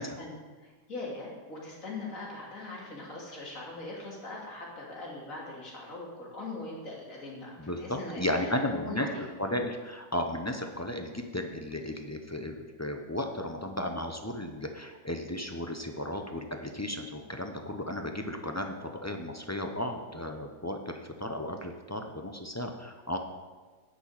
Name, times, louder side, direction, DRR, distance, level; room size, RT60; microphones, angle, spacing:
voice 1, 0.0-9.2, left 2 dB, 50° left, -3 dB, 3.1 m, -41 dB
voice 2, 7.6-23.2, left 1 dB, 25° left, 4 dB, 0.3 m, -34 dB
10.0 x 6.8 x 8.7 m, 1.4 s
omnidirectional pair, 1.8 m